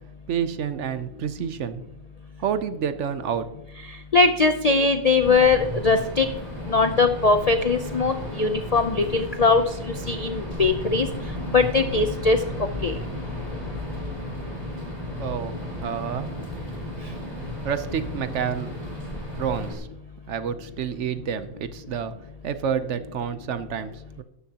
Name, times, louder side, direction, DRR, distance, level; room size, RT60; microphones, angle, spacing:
voice 1, 0.3-1.8 2.4-3.5 15.2-15.6 15.8-16.3 17.6-18.7 19.4-19.9 20.3-22.1 22.4-24.2, right 8 dB, 65° right, 11 dB, 1.0 m, -29 dB
voice 2, 4.1-6.3 6.7-9.6 10.1-11.1 11.5-12.4 12.8-12.9, left 3 dB, 55° left, 7 dB, 0.4 m, -20 dB
sound 1, 5.2-19.8, equal, 30° right, 3.2 m, -34 dB
12.5 x 9.9 x 2.9 m, 0.86 s
omnidirectional pair, 1.4 m